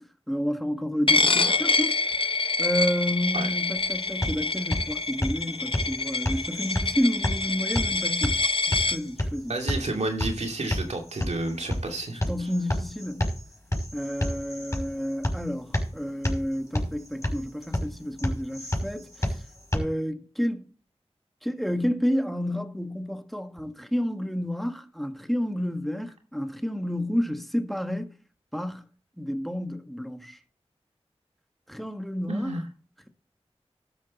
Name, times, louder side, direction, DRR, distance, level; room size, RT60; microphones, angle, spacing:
voice 1, 0.3-2.0 2.6-8.4 8.8-9.5 12.3-13.2 13.9-19.4 19.7-20.7 21.4-28.1 28.5-28.8 29.2-30.4 31.7-32.6, equal, ahead, 1.6 m, -30 dB
Coin (dropping), 1.1-9.0, left 3 dB, 50° left, 0.7 m, -26 dB
sound 1, 3.8-19.8, left 1 dB, 25° left, 5.9 m, -31 dB
voice 2, 9.5-12.2 32.3-32.6, right 2 dB, 90° right, 2.4 m, -30 dB
13.0 x 9.7 x 4.2 m
wide cardioid pair, 50°, 11 cm